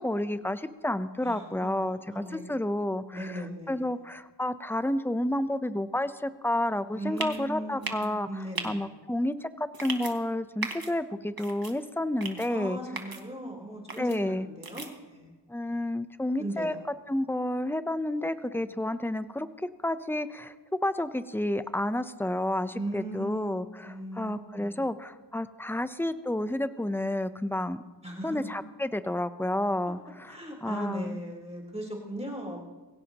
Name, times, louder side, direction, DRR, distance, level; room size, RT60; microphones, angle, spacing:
voice 1, 0.0-3.3 3.7-8.3 8.6-12.8 14.0-14.5 15.5-16.7 17.1-20.5 20.8-27.8 28.2-31.2, left 1 dB, 5° left, 12 dB, 0.7 m, -30 dB
voice 2, 1.2-2.4 3.1-4.0 6.9-8.8 12.5-15.4 16.4-16.8 22.7-23.5 23.8-24.9 28.0-28.5 30.3-32.6, right 1 dB, 15° right, -2 dB, 3.7 m, -38 dB
sound 1, 7.2-7.4 7.8-8.1 8.6-8.7 9.7-10.1 10.6-10.9 11.4-11.7 12.2-12.5 13.0-13.2 13.9-14.2 14.6-14.9, right 3 dB, 55° right, 1.8 m, -36 dB
22.5 x 16.5 x 3.0 m, 1.3 s
wide cardioid pair, 60°, 43 cm